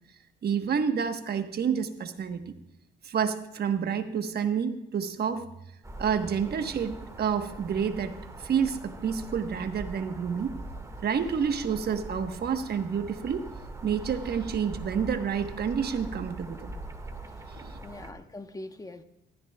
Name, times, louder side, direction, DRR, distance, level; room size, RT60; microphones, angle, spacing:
voice 1, 0.4-2.5 3.0-5.4 6.0-10.6 11.0-13.5 13.8-16.7 17.5-17.8, right 7 dB, 55° right, 1.2 m, -29 dB
sound 1, 5.8-18.1, right 2 dB, 15° right, 1.8 m, -42 dB
voice 2, 17.3-19.0, left 2 dB, 15° left, 1.0 m, -44 dB
15.5 x 13.5 x 2.3 m
cardioid pair, 90°, 20 cm